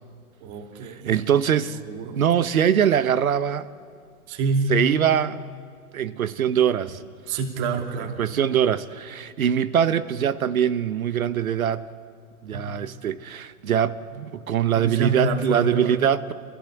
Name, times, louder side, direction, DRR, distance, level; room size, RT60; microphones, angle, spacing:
voice 1, 0.4-1.2 1.8-2.2 4.3-4.8 7.3-8.2 12.5-12.8 14.7-16.0, right 3 dB, 35° right, 2.7 m, -27 dB
voice 2, 1.1-1.8 2.1-3.7 4.7-5.4 5.9-7.0 8.2-11.8 12.4-16.3, right 9 dB, 70° right, 1.1 m, -22 dB
30.0 x 15.5 x 8.4 m
figure-of-eight pair, 115°, 44 cm